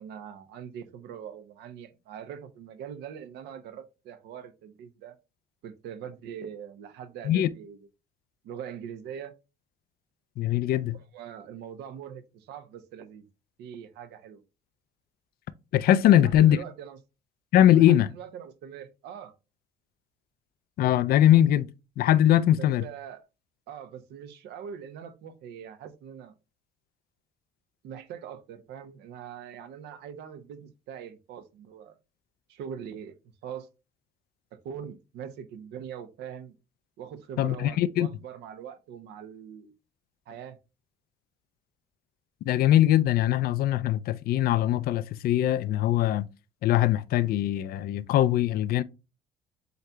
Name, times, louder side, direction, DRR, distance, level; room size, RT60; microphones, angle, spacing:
voice 1, 0.0-5.1 5.6-7.9 8.4-9.3 10.9-13.3 13.6-14.4 16.0-17.0 17.7-19.3 22.6-23.3 23.7-26.3 27.8-32.0 32.5-33.2 33.4-33.7 34.5-36.6 37.0-39.7 40.3-40.6, right 8 dB, 80° right, 0.8 m, -42 dB
voice 2, 10.4-11.0 15.7-16.6 17.5-18.1 20.8-21.7 22.0-22.8 37.4-38.1 42.5-46.3 46.6-48.8, left 12 dB, 65° left, 0.4 m, -21 dB
7.9 x 2.8 x 2.2 m
cardioid pair, 110°, 17 cm